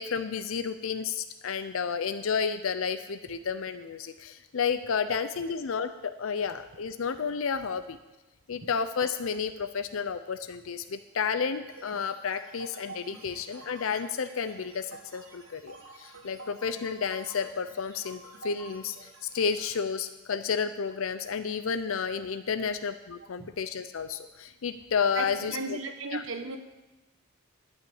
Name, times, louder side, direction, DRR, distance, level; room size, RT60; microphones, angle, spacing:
voice 1, 0.0-8.0 8.5-25.8 26.1-26.2, left 6 dB, 70° left, 10 dB, 0.5 m, -31 dB
sound 1, 11.7-19.7, right 3 dB, 80° right, 2.3 m, -49 dB
voice 2, 25.1-26.6, right 3 dB, 65° right, 6 dB, 1.1 m, -36 dB
12.0 x 5.6 x 8.6 m, 1.1 s
head